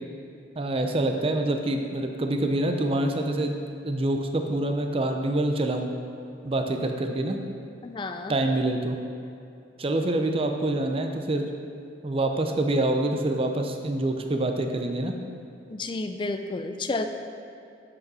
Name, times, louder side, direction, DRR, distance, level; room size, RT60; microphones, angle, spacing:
voice 1, 0.6-5.9 6.4-7.4 8.3-9.0 9.8-11.5 12.0-15.1, right 1 dB, 30° right, 4 dB, 0.6 m, -26 dB
voice 2, 7.8-8.3 15.7-17.1, left 3 dB, 25° left, 7 dB, 0.4 m, -31 dB
7.9 x 4.9 x 5.5 m, 2.6 s
head